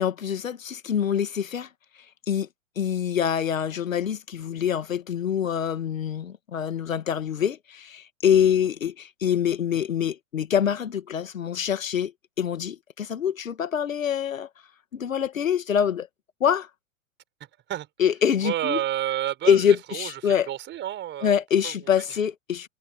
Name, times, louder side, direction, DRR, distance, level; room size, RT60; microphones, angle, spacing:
voice 1, 0.0-1.7 2.3-2.5 2.8-12.1 12.4-14.5 14.9-16.1 16.4-16.7 18.0-18.8 19.5-20.5 21.2-22.7, left 8 dB, 70° left, 1.9 m, -25 dB
voice 2, 18.4-19.6 19.9-21.4 21.6-21.7, right 12 dB, 25° right, 4.9 m, -30 dB
figure-of-eight pair, 105°, 41 cm